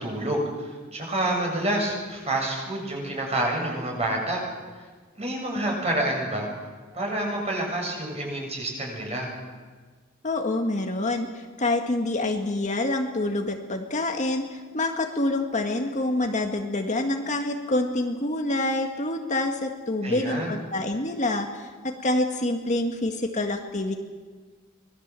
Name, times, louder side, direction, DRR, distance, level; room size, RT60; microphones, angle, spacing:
voice 1, 0.0-4.4 5.2-6.5 6.9-9.3 20.0-20.5, right 1 dB, 30° right, 0 dB, 7.6 m, -28 dB
voice 2, 10.2-21.7 22.0-24.0, left 2 dB, 35° left, 4 dB, 1.8 m, -27 dB
25.5 x 20.5 x 7.6 m, 1.5 s
head